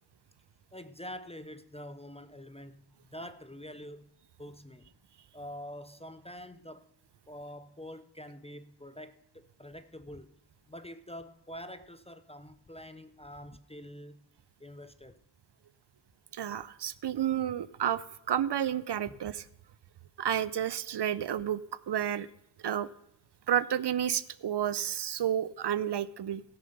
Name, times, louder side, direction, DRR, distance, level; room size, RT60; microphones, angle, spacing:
voice 1, 0.7-4.1 4.4-4.9 5.3-6.9 7.3-10.4 10.7-14.2 14.6-15.2 19.1-19.2, equal, 15° left, 0.4 m, -46 dB
voice 2, 16.3-19.4 20.2-21.6 21.9-22.3 22.6-22.9 23.5-26.4, right 10 dB, 65° right, 0.5 m, -31 dB
16.5 x 6.8 x 5.4 m
wide cardioid pair, 100°, 45 cm